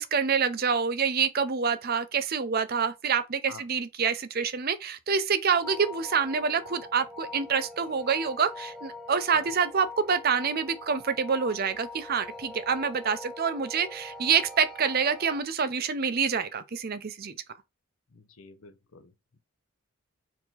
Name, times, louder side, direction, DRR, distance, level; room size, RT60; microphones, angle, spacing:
voice 1, 0.0-17.4, right 6 dB, 45° right, 0.6 m, -27 dB
sound 1, 5.6-15.4, left 2 dB, ahead, 0.4 m, -43 dB
voice 2, 18.1-19.1, left 5 dB, 70° left, 0.8 m, -46 dB
4.6 x 2.9 x 4.0 m
head